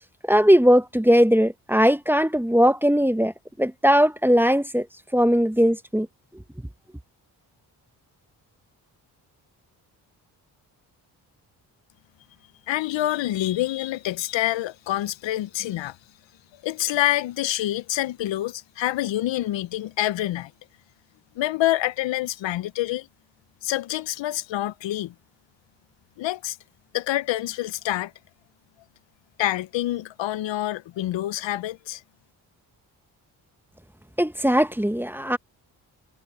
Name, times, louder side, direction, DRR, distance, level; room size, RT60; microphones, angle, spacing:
voice 1, 0.3-3.3 3.6-4.9 5.1-6.1 34.2-35.4, equal, 5° right, 1.3 m, -19 dB
voice 2, 12.7-16.0 16.6-20.5 21.4-23.1 23.6-25.1 26.2-26.6 26.9-28.1 29.4-32.0, left 14 dB, 70° left, 1.0 m, -26 dB
hypercardioid pair, 45°, 46 cm